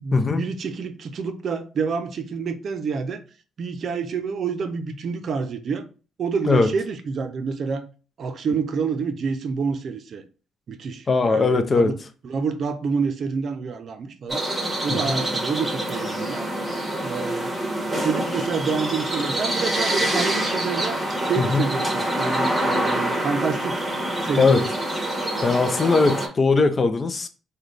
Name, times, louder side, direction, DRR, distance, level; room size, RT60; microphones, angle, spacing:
voice 1, 0.0-3.2 3.6-5.9 6.2-7.8 8.2-10.2 10.7-11.9 12.2-14.4 14.8-16.5 17.0-17.5 18.0-23.9 24.2-24.7, right 5 dB, 55° right, 0.5 m, -28 dB
voice 2, 11.1-11.9 14.9-15.2 21.4-21.6 24.4-24.6 25.4-27.3, left 4 dB, 35° left, 0.5 m, -20 dB
sound 1, 14.3-26.3, right 1 dB, 15° right, 1.3 m, -26 dB
3.9 x 2.3 x 3.2 m
cardioid pair, 90°, 0 cm